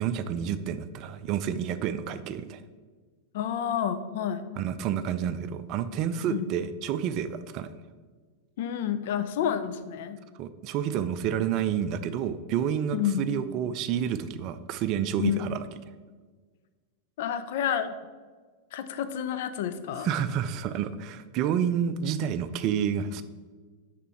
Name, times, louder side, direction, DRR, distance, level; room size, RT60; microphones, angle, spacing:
voice 1, 0.0-2.6 4.6-7.7 10.4-15.6 20.0-23.2, right 8 dB, 40° right, 12 dB, 0.4 m, -29 dB
voice 2, 3.3-4.4 6.3-6.4 8.6-10.2 12.9-13.2 15.2-15.4 17.2-17.9 18.7-20.1, left 9 dB, 55° left, 10 dB, 0.5 m, -29 dB
6.7 x 5.1 x 4.5 m, 1.4 s
figure-of-eight pair, 90°, 0 cm